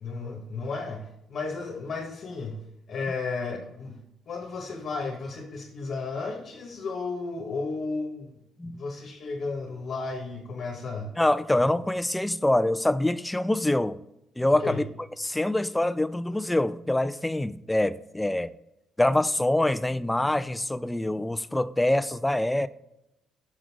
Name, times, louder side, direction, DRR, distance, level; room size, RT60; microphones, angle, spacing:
voice 1, 0.0-4.0 4.3-8.4 8.6-11.1 14.5-14.8, left 4 dB, 55° left, 1.3 m, -34 dB
voice 2, 11.2-14.0 14.4-14.8 15.2-18.5 19.0-22.7, left 1 dB, 10° left, 0.3 m, -25 dB
6.2 x 3.9 x 4.6 m
cardioid pair, 110°, 0 cm